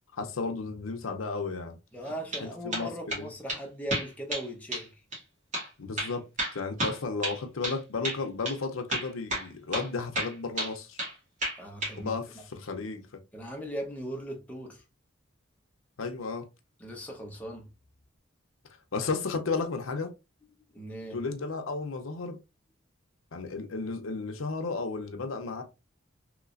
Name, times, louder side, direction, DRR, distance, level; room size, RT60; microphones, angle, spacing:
voice 1, 0.1-1.8 2.4-3.3 5.8-6.2 6.5-11.0 12.0-12.2 12.5-13.2 16.0-16.5 18.9-20.1 21.1-22.4 23.3-25.6, left 4 dB, 90° left, 0.6 m, -33 dB
voice 2, 1.9-5.0 11.5-12.4 13.3-14.8 16.8-17.7 20.7-21.2, equal, 10° left, 0.8 m, -39 dB
sound 1, 2.0-2.4 2.7-3.2 3.5-3.6 3.9-4.5 4.7-4.9 5.1-5.2 5.5-5.7 6.0-7.8 8.0-8.2 8.4-8.6 8.9-9.5 9.7-9.9 10.1-11.1 11.4-12.0, right 1 dB, 35° right, 1.5 m, -32 dB
3.2 x 2.9 x 2.4 m
head